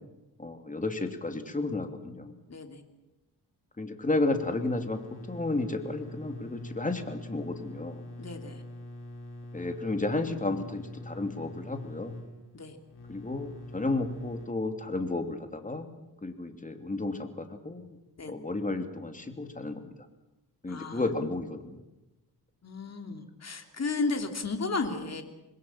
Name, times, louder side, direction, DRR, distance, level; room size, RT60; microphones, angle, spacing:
voice 1, 0.4-2.3 3.8-8.0 9.5-12.2 13.1-18.0 18.2-19.9 20.6-21.8, left 2 dB, 20° left, 6 dB, 2.9 m, -32 dB
voice 2, 2.5-2.8 8.2-8.6 12.5-12.8 18.2-18.3 20.7-21.0 22.6-25.2, left 3 dB, 40° left, 5 dB, 3.2 m, -33 dB
sound 1, 4.3-14.5, left 1 dB, 70° left, 6.6 m, -44 dB
26.5 x 20.5 x 7.4 m, 1.0 s
cardioid pair, 95°, 40 cm